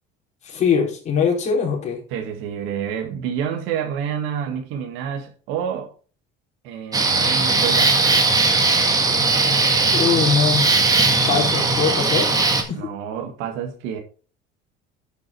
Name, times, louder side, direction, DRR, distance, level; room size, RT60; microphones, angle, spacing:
voice 1, 0.4-2.0 9.9-10.6 11.3-12.3 12.6-12.9, left 6 dB, 35° left, 4.7 m, -21 dB
voice 2, 2.1-5.9 6.6-8.2 12.7-14.0, right 8 dB, 85° right, 1.8 m, -28 dB
sound 1, 6.9-12.6, right 3 dB, 20° right, 1.8 m, -18 dB
11.5 x 6.3 x 4.6 m
cardioid pair, 150°, 20 cm